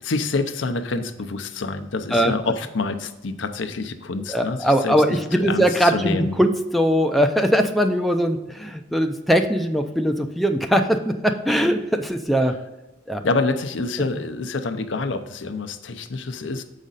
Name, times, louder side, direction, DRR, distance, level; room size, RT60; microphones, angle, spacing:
voice 1, 0.0-4.9 5.3-6.3 13.2-16.6, left 3 dB, 70° left, 8 dB, 0.6 m, -27 dB
voice 2, 4.3-12.6 13.1-13.2, equal, ahead, 4 dB, 0.4 m, -20 dB
7.4 x 5.0 x 4.0 m, 1.1 s
head